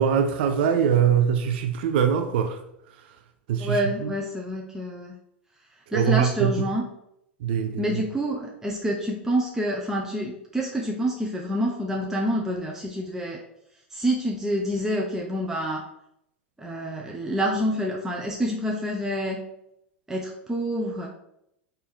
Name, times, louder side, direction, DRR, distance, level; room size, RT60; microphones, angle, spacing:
voice 1, 0.0-2.6 3.5-4.1 5.9-6.6 7.4-7.9, right 8 dB, 60° right, 7 dB, 0.4 m, -22 dB
voice 2, 3.6-5.1 5.9-6.9 7.8-13.4 13.9-15.9 16.6-19.4 20.1-21.1, equal, 10° right, -1 dB, 0.6 m, -27 dB
4.3 x 2.6 x 3.6 m, 0.80 s
hypercardioid pair, 90°, 6 cm